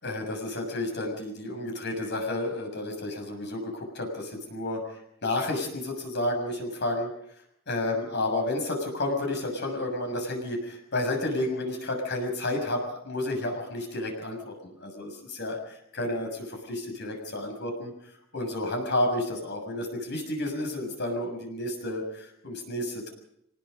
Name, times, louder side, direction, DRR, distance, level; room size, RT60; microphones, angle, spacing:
voice 1, 0.0-4.8 5.2-7.1 7.7-17.9 18.3-23.1, left 1 dB, 55° left, 3 dB, 6.6 m, -31 dB
24.5 x 20.5 x 5.3 m, 0.74 s
head